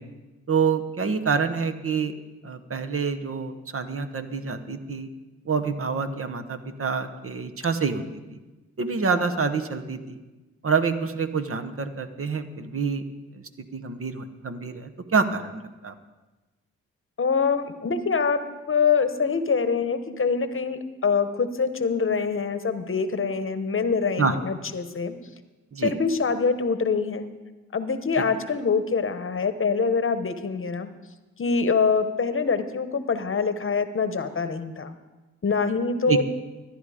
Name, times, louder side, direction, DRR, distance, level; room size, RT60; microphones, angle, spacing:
voice 1, 0.5-2.1 2.4-5.1 5.4-8.0 8.3-8.4 8.8-10.2 10.6-13.0 13.3-15.9 24.2-24.4 25.7-25.9 36.1-36.2, right 5 dB, 45° right, 8 dB, 1.0 m, -27 dB
voice 2, 17.2-18.4 18.7-25.1 25.8-27.3 27.7-30.9 31.4-34.9 35.4-36.2, left 5 dB, 40° left, 11 dB, 1.0 m, -24 dB
13.5 x 10.0 x 5.0 m, 1.2 s
cardioid pair, 55°, 31 cm